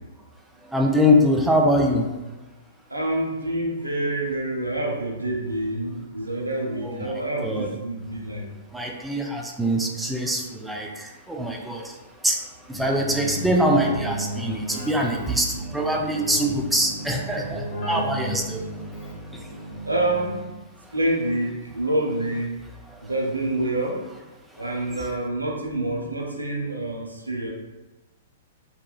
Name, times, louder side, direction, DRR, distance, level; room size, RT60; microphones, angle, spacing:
voice 1, 0.7-2.1 6.8-7.7 8.7-11.9 12.2-12.4 12.7-18.6, equal, 5° right, 0 dB, 0.3 m, -23 dB
voice 2, 2.9-8.5 13.1-13.3 19.8-20.4 20.9-22.5 23.0-24.0 24.6-27.5, right 1 dB, 90° right, -1 dB, 0.5 m, -27 dB
Keyboard (musical), 12.7-20.6, right 1 dB, 25° left, 1.0 m, -34 dB
2.9 x 2.4 x 2.2 m, 1.1 s
figure-of-eight pair, 110°, 0 cm